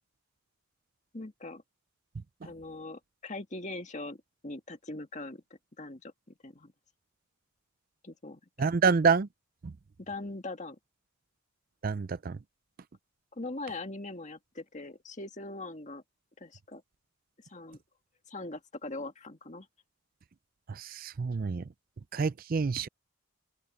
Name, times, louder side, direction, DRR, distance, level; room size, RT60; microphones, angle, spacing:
voice 1, 1.1-1.6 2.4-5.4 5.8-6.7 8.0-8.4 10.0-10.8 13.3-16.0 16.4-16.8 17.5-17.8 18.3-19.7, left 2 dB, 35° left, 2.0 m, -41 dB
voice 2, 8.6-9.3 9.6-9.7 11.8-12.4 20.7-21.6 22.1-22.9, right 5 dB, 45° right, 0.4 m, -27 dB
open air
head